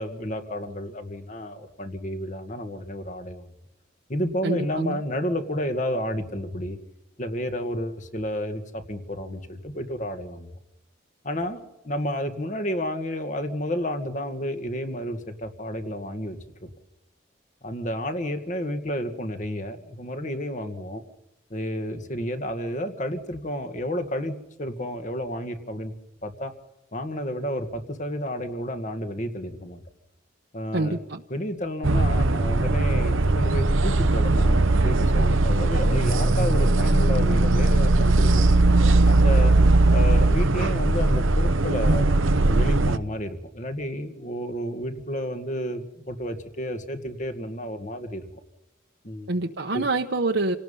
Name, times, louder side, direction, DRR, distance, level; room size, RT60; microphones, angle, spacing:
voice 1, 0.0-3.4 4.1-6.8 7.2-10.5 11.2-16.7 17.6-21.0 21.5-26.0 26.2-26.5 26.9-29.8 30.5-31.0 31.3-38.5 39.1-39.5 39.9-42.1 42.5-48.3 49.0-49.3 49.7-49.9, equal, 40° left, 7 dB, 2.1 m, -31 dB
voice 2, 4.4-5.0 30.7-31.2 49.3-50.6, right 2 dB, 60° right, 2 dB, 1.1 m, -26 dB
sound 1, 31.8-43.0, right 2 dB, 90° right, 1.0 m, -19 dB
28.0 x 18.5 x 5.6 m, 0.90 s
head